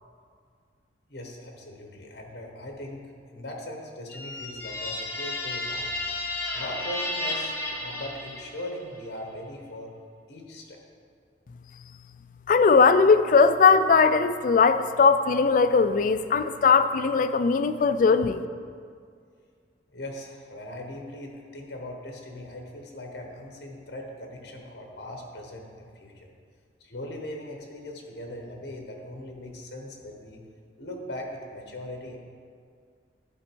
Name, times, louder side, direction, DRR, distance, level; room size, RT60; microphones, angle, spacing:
voice 1, 1.1-3.0 3.3-5.9 6.5-9.9 10.3-10.8 19.9-26.3 26.8-30.4 30.8-32.2, left 1 dB, 65° left, 2 dB, 1.1 m, -39 dB
sound 1, 4.1-8.8, left 2 dB, 15° left, 0.8 m, -33 dB
voice 2, 12.5-18.4, left 5 dB, 45° left, 11 dB, 0.3 m, -19 dB
11.0 x 4.3 x 4.5 m, 2.1 s
head